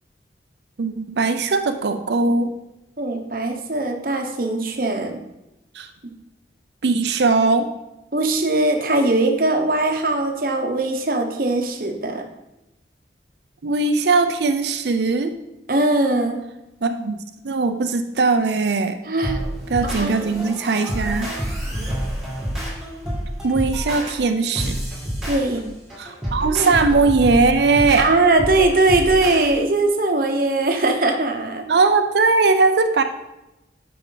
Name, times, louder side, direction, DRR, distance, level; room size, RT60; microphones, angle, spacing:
voice 1, 0.8-2.5 5.7-5.9 6.8-7.7 13.6-15.3 16.8-17.2 17.4-19.0 19.7-21.3 23.4-24.8 26.0-28.1 31.7-33.0, right 3 dB, 70° right, 8 dB, 0.5 m, -19 dB
voice 2, 3.0-5.2 8.1-12.2 15.7-16.4 19.1-19.4 19.8-20.3 25.3-25.6 26.5-26.7 28.0-31.7, right 2 dB, 50° right, 4 dB, 0.9 m, -20 dB
sound 1, 19.2-29.5, equal, ahead, 2.4 m, -28 dB
9.0 x 5.9 x 3.9 m, 0.94 s
head